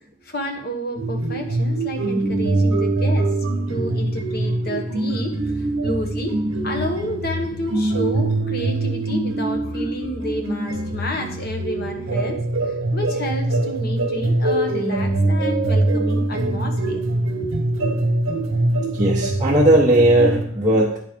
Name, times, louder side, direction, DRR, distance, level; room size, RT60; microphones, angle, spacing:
voice 1, 0.2-3.3 3.7-6.4 6.6-17.0 17.4-17.5, equal, 45° left, 4 dB, 1.1 m, -30 dB
sound 1, 1.0-20.4, right 2 dB, 70° right, 1.0 m, -23 dB
voice 2, 18.9-21.0, right 1 dB, 15° right, -6 dB, 0.9 m, -17 dB
9.7 x 4.0 x 5.1 m, 0.64 s
head